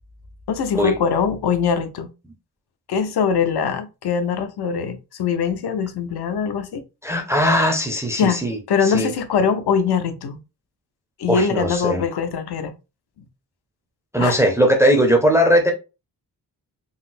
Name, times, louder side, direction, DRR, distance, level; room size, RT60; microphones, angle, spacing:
voice 1, 0.5-2.1 2.9-6.8 8.2-8.4 8.7-10.4 11.2-12.7 14.2-14.4, left 6 dB, 70° left, 0.6 m, -22 dB
voice 2, 7.0-9.1 11.3-12.0 14.1-15.7, equal, 5° right, 0.4 m, -19 dB
4.0 x 2.0 x 2.5 m
wide cardioid pair, 175°, 40 cm